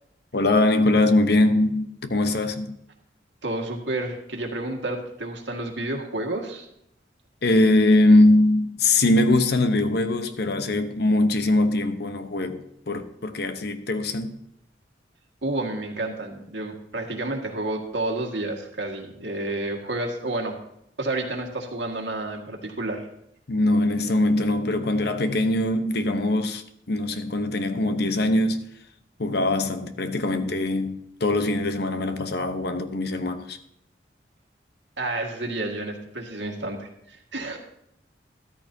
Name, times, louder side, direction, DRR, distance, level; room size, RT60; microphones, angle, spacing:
voice 1, 0.3-2.8 7.4-14.4 23.5-28.7 29.2-33.6, left 2 dB, 60° left, 0.9 m, -22 dB
voice 2, 3.4-6.7 15.4-20.6 21.0-23.1 35.0-37.6, right 2 dB, 85° right, 1.9 m, -30 dB
13.5 x 13.0 x 2.8 m
head